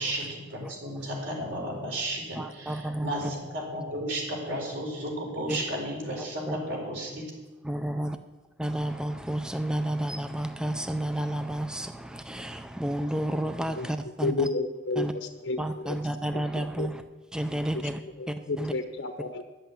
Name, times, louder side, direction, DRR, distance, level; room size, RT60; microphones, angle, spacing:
voice 1, 0.0-7.3, right 1 dB, 60° right, 4.4 m, -33 dB
voice 2, 2.4-3.3 5.5-5.6 6.5-6.6 7.6-8.2 8.6-14.5 15.0-15.1 15.6-17.0 17.3-18.0 18.3-18.7, right 1 dB, 5° right, 0.4 m, -31 dB
voice 3, 14.2-16.0 16.6-16.9 18.2-19.4, left 3 dB, 70° left, 0.9 m, -31 dB
11.5 x 7.9 x 8.4 m
head